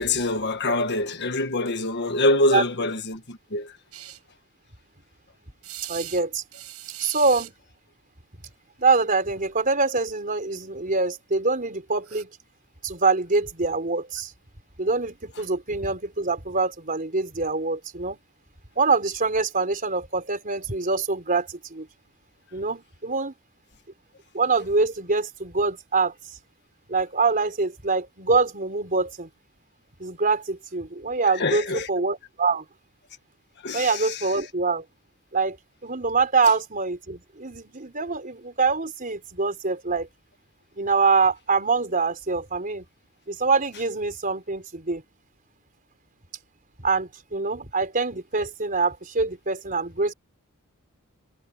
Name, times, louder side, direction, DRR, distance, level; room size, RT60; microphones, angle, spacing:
voice 1, 0.0-3.8 31.3-31.9 33.6-34.3, left 2 dB, 50° left, 1.6 m, -25 dB
sound 1, 3.9-4.2 5.6-6.2 6.5-7.5 8.9-9.1 9.4-9.5 12.0-12.2, right 14 dB, 80° right, 7.7 m, -39 dB
voice 2, 5.9-6.4 7.0-7.5 8.8-12.3 12.8-14.3 14.8-18.2 18.8-21.9 22.5-23.3 24.3-26.1 26.9-29.3 30.0-32.6 33.7-34.8 35.3-35.6 35.8-40.1 40.8-42.8 43.3-45.0 46.8-50.1, right 4 dB, 40° right, 4.3 m, -24 dB
head